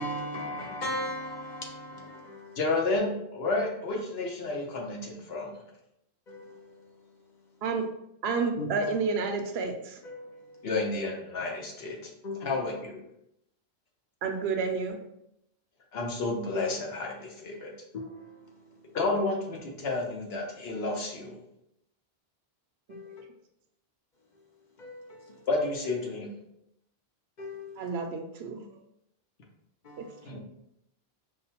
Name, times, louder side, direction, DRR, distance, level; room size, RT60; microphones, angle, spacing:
voice 1, 0.0-2.6 6.3-6.9 8.6-8.9 10.0-10.7 12.2-12.6 17.6-17.7 17.9-19.0 22.9-23.2 24.8-25.5 27.4-28.0 29.8-30.3, left 1 dB, 50° left, 0.7 m, -39 dB
voice 2, 2.6-5.5 10.6-12.1 12.4-13.0 15.9-17.7 18.9-21.3 25.5-26.3 30.3-30.4, left 2 dB, 70° left, 1.1 m, -31 dB
voice 3, 8.2-10.0 14.2-15.0 27.8-28.7 30.0-30.1 30.3-30.4, right 4 dB, 75° right, 0.8 m, -30 dB
5.3 x 2.1 x 2.8 m
omnidirectional pair, 1.1 m